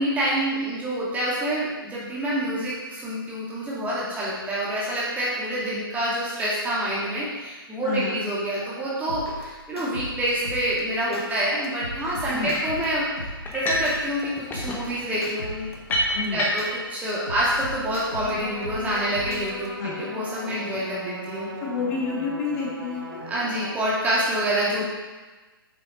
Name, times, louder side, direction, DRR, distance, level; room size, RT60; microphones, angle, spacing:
voice 1, 0.0-15.7 16.0-21.5 23.3-24.8, right 1 dB, 10° right, -7 dB, 2.4 m, -27 dB
voice 2, 7.8-8.2 12.3-12.5 16.1-16.4 19.8-20.0 21.6-23.2, left 4 dB, 40° left, -4 dB, 2.1 m, -29 dB
sound 1, 9.1-11.2 11.6-14.2 14.5-16.7 17.1-19.7, equal, 85° left, 1.8 m, -37 dB
sound 2, 12.5-12.8 13.4-13.9 14.2-16.8, left 1 dB, 15° left, 1.3 m, -28 dB
sound 3, 18.0-23.8, right 1 dB, 45° right, 2.9 m, -38 dB
8.1 x 7.1 x 4.0 m, 1.2 s
figure-of-eight pair, 120°, 12 cm